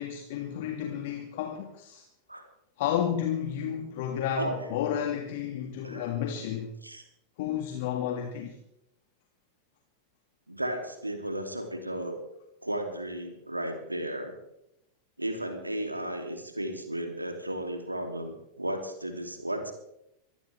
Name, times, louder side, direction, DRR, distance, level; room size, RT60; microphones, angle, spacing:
voice 1, 0.0-2.0 2.8-6.7 7.4-8.6, left 9 dB, 50° left, 2.0 m, -31 dB
voice 2, 4.3-4.7 5.8-6.1 6.8-7.0 10.5-12.2 12.6-14.3 15.2-19.7, right 1 dB, 85° right, 2.9 m, -34 dB
24.0 x 16.0 x 3.5 m
figure-of-eight pair, 90°, 0 cm